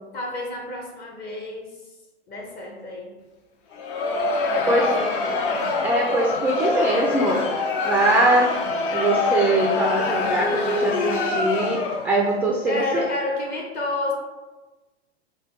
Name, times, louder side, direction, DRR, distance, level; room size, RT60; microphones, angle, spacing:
voice 1, 0.1-1.7 2.3-3.2 4.5-5.6 12.6-14.1, left 2 dB, 30° left, 0 dB, 1.1 m, -30 dB
Crowd, 3.7-12.2, left 3 dB, 50° left, 0.7 m, -24 dB
voice 2, 5.8-7.4 7.8-8.5 8.9-13.0, right 2 dB, 5° right, -2 dB, 0.3 m, -22 dB
5.3 x 2.2 x 3.6 m, 1.2 s
hypercardioid pair, 95°, 33 cm